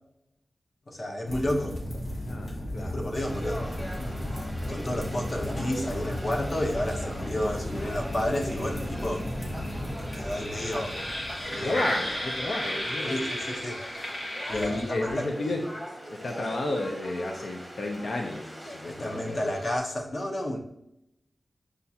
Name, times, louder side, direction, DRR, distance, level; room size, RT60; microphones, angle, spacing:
voice 1, 0.9-1.8 2.8-3.6 4.7-9.3 10.1-11.0 11.5-11.8 13.0-13.8 14.5-15.3 18.9-20.6, left 1 dB, 50° left, 1 dB, 0.8 m, -31 dB
sound 1, 1.3-15.2, left 1 dB, 65° left, 1.4 m, -34 dB
voice 2, 2.3-3.0 11.6-13.1 14.5-15.7 16.1-19.4, left 2 dB, 85° left, 2 dB, 0.5 m, -32 dB
Conversation / Crowd, 3.2-19.8, equal, 5° left, 0.9 m, -41 dB
6.6 x 2.4 x 2.8 m, 0.79 s
wide cardioid pair, 80°, 0 cm